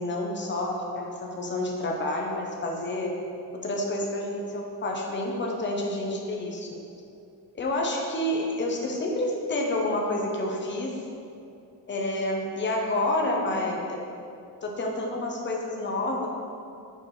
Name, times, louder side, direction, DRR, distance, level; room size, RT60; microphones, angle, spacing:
voice 1, 0.0-3.1 3.5-6.7 7.5-11.0 11.9-14.0 14.6-16.3, left 1 dB, 25° left, -1 dB, 1.0 m, -29 dB
8.7 x 4.7 x 4.8 m, 2.6 s
cardioid pair, 175°, 42 cm